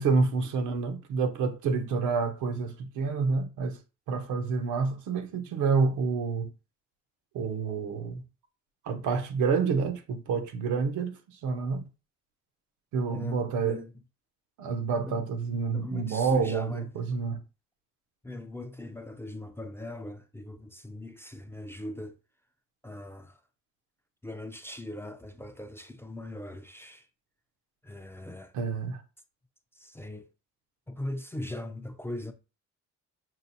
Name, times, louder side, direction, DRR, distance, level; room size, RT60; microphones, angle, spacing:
voice 1, 0.0-3.8 4.1-6.5 7.3-8.2 8.8-11.2 11.4-11.9 12.9-13.8 14.6-17.4 28.5-29.0, right 5 dB, 80° right, 0.7 m, -28 dB
voice 2, 13.1-13.9 15.1-15.2 15.7-16.9 18.2-22.2 22.8-23.4 24.2-27.1 27.8-28.5 29.8-30.3 30.9-32.3, left 1 dB, 10° left, 0.4 m, -40 dB
5.6 x 2.4 x 2.7 m
cardioid pair, 90°, 30 cm